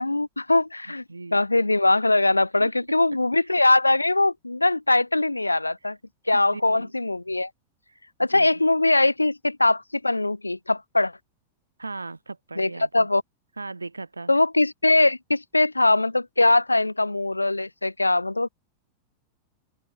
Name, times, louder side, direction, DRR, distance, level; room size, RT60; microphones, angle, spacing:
voice 1, 0.0-1.0 1.3-6.0 6.3-7.5 8.2-11.1 12.6-13.2 14.3-18.5, left 2 dB, 85° left, 0.6 m, -21 dB
voice 2, 1.1-1.5 2.6-2.7 6.3-6.9 8.3-8.5 11.8-13.1 13.6-14.3, right 3 dB, 80° right, 3.7 m, -37 dB
open air
figure-of-eight pair, 90°, 0 cm